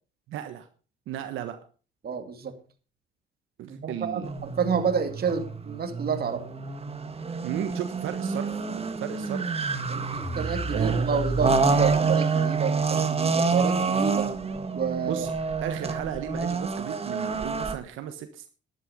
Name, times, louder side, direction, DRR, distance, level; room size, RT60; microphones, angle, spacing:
voice 1, 0.3-0.7 1.1-1.6 3.6-4.3 7.4-8.6 9.0-9.4 10.7-11.1 15.0-15.3 15.6-18.5, right 10 dB, 85° right, 7 dB, 1.4 m, -34 dB
voice 2, 2.0-2.6 3.6-6.5 9.9-14.3 14.7-15.3, right 6 dB, 50° right, 7 dB, 2.4 m, -29 dB
sound 1, 4.2-17.7, right 4 dB, 30° right, 1.7 m, -27 dB
sound 2, 10.2-12.0, equal, ahead, 3.5 m, -36 dB
11.5 x 11.5 x 5.1 m, 0.37 s
cardioid pair, 90°, 20 cm